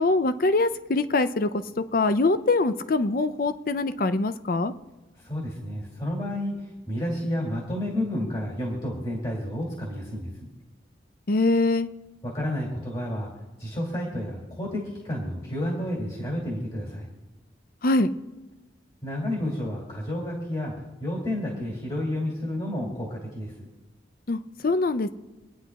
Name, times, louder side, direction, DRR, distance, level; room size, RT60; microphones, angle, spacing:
voice 1, 0.0-4.7 11.3-11.9 17.8-18.1 24.3-25.1, left 2 dB, 50° left, 11 dB, 0.5 m, -23 dB
voice 2, 5.2-10.3 12.2-13.3 13.6-17.1 19.0-20.7 21.0-23.7, left 1 dB, 30° left, -3 dB, 2.5 m, -30 dB
27.0 x 9.9 x 2.4 m, 1.1 s
head